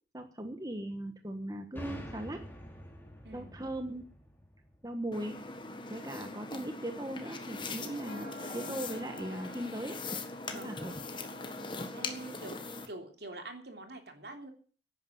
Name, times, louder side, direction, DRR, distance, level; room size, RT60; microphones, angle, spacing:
voice 1, 0.1-2.4 3.3-4.1 4.8-5.4 5.9-10.0 10.5-10.9, right 1 dB, 20° right, 6 dB, 1.2 m, -39 dB
sound 1, 1.8-5.4, equal, 10° left, 3.1 m, -47 dB
sound 2, 5.1-12.9, left 3 dB, 25° left, 1.6 m, -41 dB
Wind instrument woodwind instrument, 7.3-12.1, left 2 dB, 80° left, 3.1 m, -50 dB
voice 2, 11.9-14.5, right 2 dB, 65° right, 5 dB, 3.3 m, -45 dB
11.5 x 9.4 x 9.8 m, 0.43 s
head